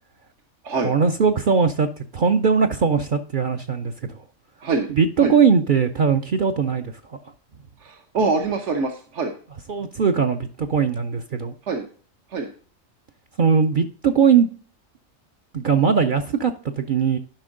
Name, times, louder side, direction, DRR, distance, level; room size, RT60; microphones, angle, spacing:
voice 1, 0.8-1.9 2.1-4.2 5.0-7.2 9.7-11.5 13.4-14.5 15.5-17.2, right 6 dB, 55° right, 6 dB, 0.6 m, -20 dB
voice 2, 7.8-9.3 11.6-11.9 12.3-12.5, right 4 dB, 70° right, 4 dB, 1.2 m, -24 dB
12.0 x 5.3 x 3.7 m, 0.43 s
omnidirectional pair, 1.3 m